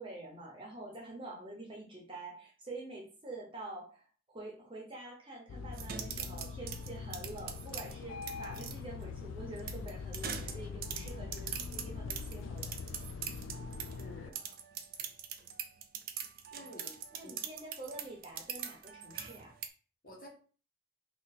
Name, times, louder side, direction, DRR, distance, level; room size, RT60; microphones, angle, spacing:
voice 1, 0.0-12.7 17.1-19.5, right 2 dB, 25° right, -1 dB, 0.8 m, -47 dB
sound 1, 5.5-14.3, left 5 dB, 80° left, 0.3 m, -43 dB
sound 2, 5.7-8.7 9.6-14.0 14.3-19.7, right 8 dB, 45° right, 0.4 m, -42 dB
voice 2, 14.0-14.5 16.5-17.0 17.2-17.3 20.0-20.3, left 1 dB, 45° left, -2 dB, 1.3 m, -51 dB
2.9 x 2.7 x 4.0 m, 0.39 s
head